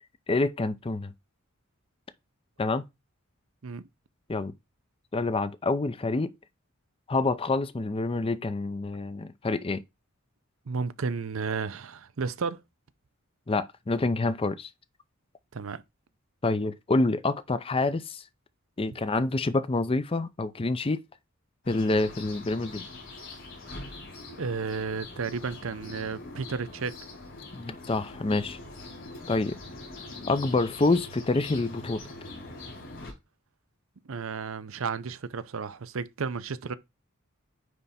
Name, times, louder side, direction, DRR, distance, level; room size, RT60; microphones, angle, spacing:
voice 1, 0.3-1.1 2.6-2.8 4.3-4.5 5.1-6.3 7.1-9.8 13.5-14.7 16.4-18.2 18.8-21.0 21.7-22.8 27.5-28.6 29.3-29.5 30.3-32.0, left 2 dB, 25° left, 0.5 m, -27 dB
voice 2, 10.7-12.6 15.5-15.8 23.8-23.9 24.4-26.9 34.1-36.7, right 5 dB, 65° right, 0.6 m, -33 dB
sound 1, 21.6-33.1, left 2 dB, 60° left, 4.0 m, -43 dB
9.5 x 3.4 x 4.1 m
head